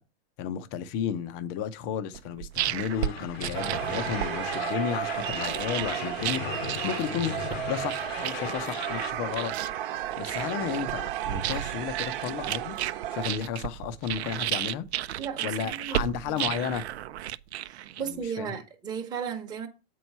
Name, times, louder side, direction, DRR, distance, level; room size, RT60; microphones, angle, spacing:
voice 1, 0.4-9.5 10.2-12.8 13.1-14.9 15.4-16.8 18.1-18.5, left 8 dB, 25° left, 0.7 m, -33 dB
sound 1, 2.1-18.2, right 12 dB, 75° right, 0.7 m, -34 dB
sound 2, 2.9-9.1, left 8 dB, 70° left, 1.2 m, -37 dB
sound 3, 3.5-13.3, right 12 dB, 50° right, 1.1 m, -34 dB
voice 2, 15.2-16.0 17.6-19.7, right 7 dB, 10° right, 1.1 m, -35 dB
8.4 x 4.7 x 5.5 m
supercardioid pair, 170°, 33 cm